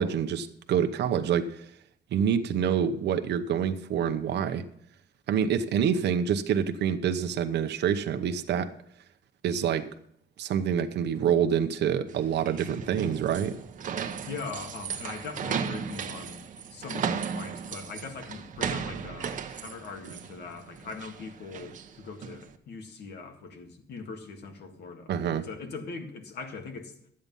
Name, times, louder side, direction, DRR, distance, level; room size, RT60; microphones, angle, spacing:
voice 1, 0.0-1.6 2.1-4.6 5.3-8.7 9.4-9.9 10.4-13.6 25.1-25.4, right 8 dB, 70° right, 8 dB, 0.9 m, -27 dB
sound 1, 12.1-22.5, right 7 dB, 45° right, 1.0 m, -36 dB
voice 2, 14.3-27.0, left 4 dB, 65° left, 5 dB, 1.9 m, -41 dB
12.5 x 8.7 x 5.4 m, 0.68 s
cardioid pair, 170°, 18 cm